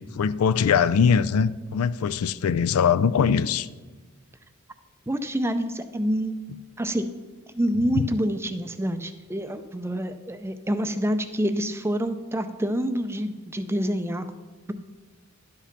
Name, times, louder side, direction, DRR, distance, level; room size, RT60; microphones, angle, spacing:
voice 1, 0.0-3.7 8.0-8.1, left 6 dB, 75° left, 16 dB, 0.4 m, -22 dB
voice 2, 5.1-6.3 6.8-7.1 7.5-14.3, equal, 10° right, 9 dB, 0.4 m, -27 dB
11.5 x 5.8 x 5.9 m, 1.3 s
head